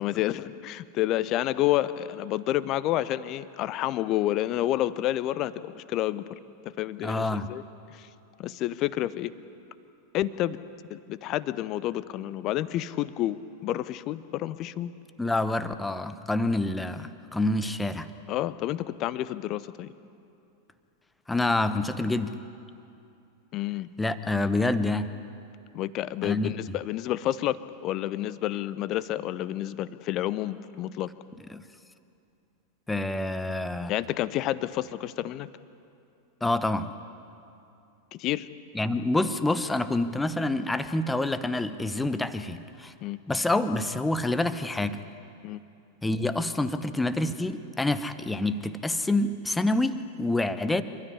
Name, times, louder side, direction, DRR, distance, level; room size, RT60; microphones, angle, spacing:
voice 1, 0.0-6.2 6.6-7.6 7.9-8.1 8.4-9.3 10.1-10.6 10.9-14.9 18.3-19.9 23.5-23.9 25.7-31.1 33.9-35.5 38.1-38.5 43.0-43.2 45.4-45.6, left 14 dB, 35° left, 17 dB, 0.7 m, -29 dB
voice 2, 7.0-7.5 15.2-18.1 21.3-22.3 24.0-25.1 26.2-26.5 31.5-31.6 32.9-33.9 36.4-36.9 38.7-42.9 43.3-45.0 46.0-50.8, left 2 dB, 10° left, 12 dB, 0.9 m, -27 dB
27.5 x 13.0 x 9.9 m, 2.6 s
figure-of-eight pair, 90°, 0 cm